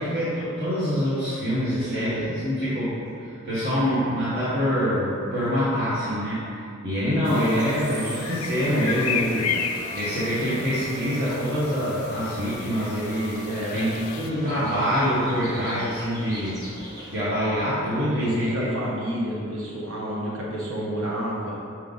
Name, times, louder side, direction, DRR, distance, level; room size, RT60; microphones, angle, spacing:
voice 1, 0.0-9.4 9.9-13.4 13.7-16.6 17.1-18.7, equal, 50° right, -12 dB, 1.3 m, -25 dB
voice 2, 1.8-2.3 7.1-7.4 8.8-9.4 13.5-13.9 17.9-21.6, equal, 75° right, -5 dB, 1.1 m, -30 dB
sound 1, 7.3-14.3, left 7 dB, 85° left, 0.4 m, -34 dB
sound 2, 7.3-17.1, equal, 20° right, 1.2 m, -40 dB
5.7 x 4.5 x 3.9 m, 2.5 s
head